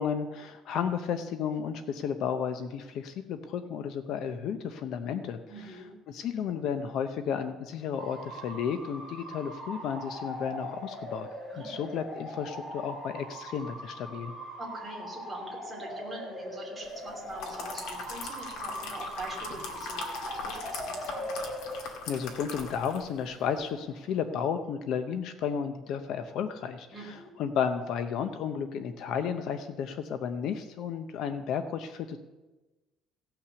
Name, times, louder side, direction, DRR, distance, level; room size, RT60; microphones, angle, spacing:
voice 1, 0.0-5.4 5.7-5.8 6.1-11.3 11.6-14.3 22.1-32.2, left 7 dB, 55° left, 9 dB, 0.6 m, -33 dB
voice 2, 5.5-5.9 11.5-11.8 14.6-21.2 26.9-27.3, right 2 dB, 10° right, -3 dB, 2.9 m, -43 dB
Bark / Motor vehicle (road) / Siren, 8.0-24.2, equal, 30° left, 4.8 m, -41 dB
sound 1, 17.1-23.1 23.4-23.6, left 4 dB, 85° left, 2.2 m, -40 dB
17.0 x 5.8 x 6.9 m, 1.1 s
cardioid pair, 175°, 0 cm